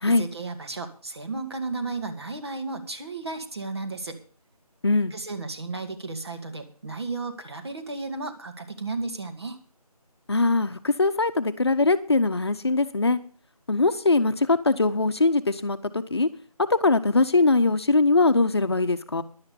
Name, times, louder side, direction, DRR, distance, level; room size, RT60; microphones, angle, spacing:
voice 1, 0.0-4.2 5.1-9.6, right 3 dB, 40° right, 7 dB, 1.8 m, -34 dB
voice 2, 10.3-13.2 13.7-16.3 16.7-19.2, left 3 dB, 40° left, 11 dB, 1.0 m, -21 dB
11.5 x 8.6 x 6.9 m, 0.42 s
figure-of-eight pair, 170°, 20 cm